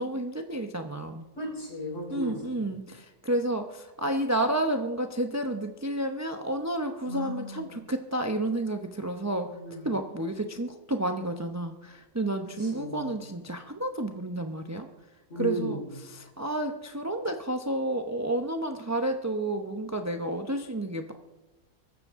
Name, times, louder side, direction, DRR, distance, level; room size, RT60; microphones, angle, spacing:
voice 1, 0.0-1.2 2.1-9.5 9.8-14.9 15.4-21.1, right 1 dB, 20° right, 5 dB, 0.4 m, -31 dB
voice 2, 1.4-2.6 7.1-7.7 9.5-9.9 12.6-13.1 15.3-15.9, equal, 35° left, -2 dB, 5.3 m, -35 dB
23.5 x 13.5 x 3.7 m, 1.1 s
omnidirectional pair, 1.8 m